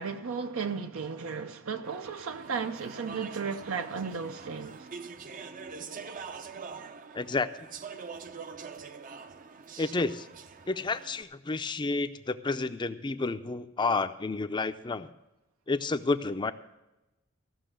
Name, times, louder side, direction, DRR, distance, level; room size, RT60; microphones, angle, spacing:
voice 1, 0.0-4.9, right 5 dB, 80° right, 0.7 m, -34 dB
Speech / Chatter, 1.8-11.2, right 5 dB, 40° right, 0.6 m, -44 dB
voice 2, 7.1-7.5 9.8-10.3 10.7-15.1 15.7-16.5, left 3 dB, 20° left, 0.5 m, -30 dB
15.5 x 6.2 x 7.7 m
head